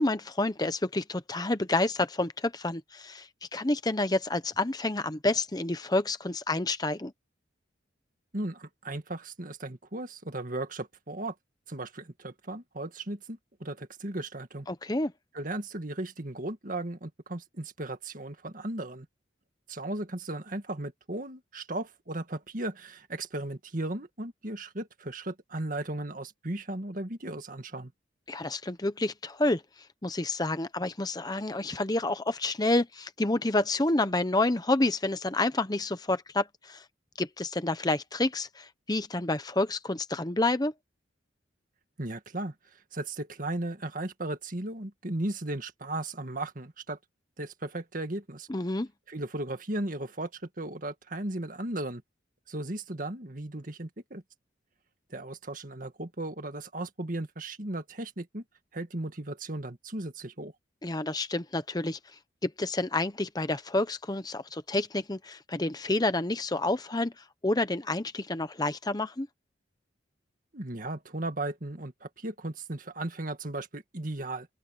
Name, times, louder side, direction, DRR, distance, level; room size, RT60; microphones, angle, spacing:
voice 1, 0.0-7.1 14.7-15.1 28.3-29.6 30.0-36.8 37.2-40.7 48.5-48.9 60.8-62.0 62.4-69.3, left 2 dB, 20° left, 0.9 m, -29 dB
voice 2, 8.3-11.3 11.7-14.7 15.3-19.1 19.7-27.9 42.0-42.5 42.9-47.0 47.4-48.5 49.1-52.0 52.5-54.2 55.1-58.4 58.7-60.5 70.5-74.5, right 1 dB, 45° right, 2.0 m, -36 dB
open air
head